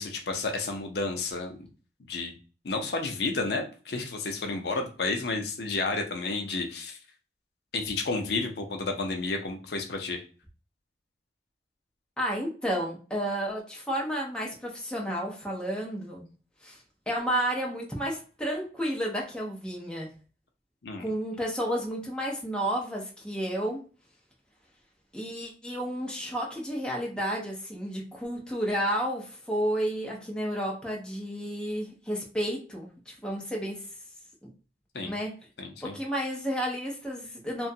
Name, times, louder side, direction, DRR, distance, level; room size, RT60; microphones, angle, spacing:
voice 1, 0.0-1.6 2.1-2.4 2.6-7.0 7.7-10.2 20.8-21.0 34.9-35.1 35.6-35.9, left 3 dB, 65° left, 4 dB, 0.5 m, -31 dB
voice 2, 12.2-16.3 16.6-16.8 17.1-20.1 21.0-23.8 25.1-33.8 34.4-34.5 35.0-35.3 35.8-37.7, equal, 5° left, -2 dB, 0.6 m, -31 dB
2.9 x 2.3 x 2.6 m, 0.36 s
head